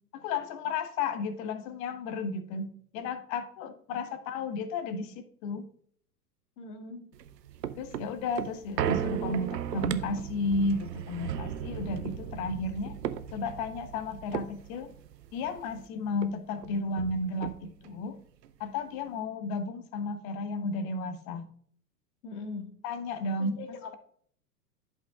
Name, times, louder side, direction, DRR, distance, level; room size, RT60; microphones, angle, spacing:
voice 1, 0.1-5.7 7.7-13.0 13.3-14.9 15.3-18.2 18.6-21.5 22.8-23.9, left 3 dB, 40° left, 10 dB, 0.9 m, -33 dB
voice 2, 6.6-7.1 22.2-22.7 23.4-24.0, left 4 dB, 65° left, 6 dB, 1.5 m, -41 dB
sound 1, 7.1-15.9 16.2-16.3 16.6-18.0 18.4-18.5, right 9 dB, 90° right, 0.6 m, -36 dB
11.0 x 5.4 x 2.4 m, 0.62 s
hypercardioid pair, 105°, 48 cm